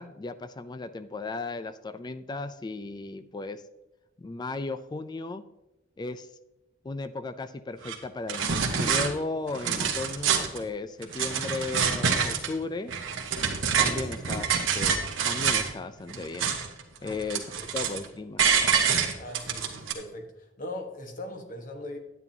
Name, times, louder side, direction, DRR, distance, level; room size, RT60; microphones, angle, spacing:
voice 1, 0.0-3.6 4.2-5.4 6.0-6.3 6.8-12.9 13.8-16.6 17.0-18.4, left 3 dB, 20° left, 12 dB, 0.3 m, -35 dB
sound 1, 7.8-7.9 8.3-9.1 9.5-10.6 11.0-12.5 12.9-15.7 16.1-16.8 17.1-18.0 18.4-19.9, right 6 dB, 90° right, 1.2 m, -26 dB
voice 2, 19.2-22.0, left 1 dB, 45° left, 4 dB, 1.3 m, -40 dB
10.5 x 8.9 x 2.8 m, 0.93 s
head